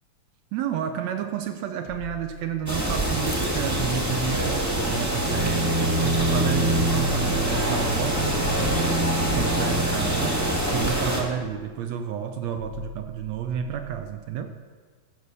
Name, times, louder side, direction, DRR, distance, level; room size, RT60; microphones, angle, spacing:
voice 1, 0.5-14.6, right 8 dB, 80° right, 7 dB, 1.6 m, -31 dB
sound 1, 1.8-3.2 4.0-5.6 6.1-7.5 8.3-9.9 10.4-11.8 12.6-14.2, equal, 70° left, 2.2 m, -42 dB
sound 2, 2.7-11.2, right 1 dB, 15° right, 0.6 m, -26 dB
Bowed string instrument, 5.2-11.0, equal, 45° right, 1.5 m, -27 dB
14.0 x 6.7 x 6.8 m, 1.5 s
omnidirectional pair, 3.7 m